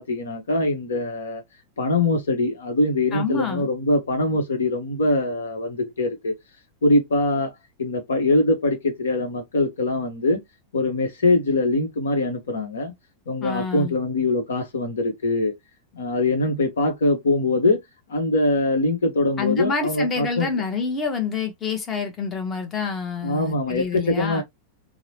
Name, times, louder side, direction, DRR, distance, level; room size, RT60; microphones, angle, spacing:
voice 1, 0.0-1.4 1.8-6.3 6.8-7.5 7.8-10.4 10.7-12.9 13.3-15.5 15.9-17.8 18.1-20.5 23.2-24.4, left 2 dB, 65° left, 0.9 m, -22 dB
voice 2, 3.1-3.7 13.4-14.0 19.4-24.4, left 5 dB, 25° left, 0.9 m, -27 dB
2.9 x 2.0 x 2.8 m
figure-of-eight pair, 90°, 0 cm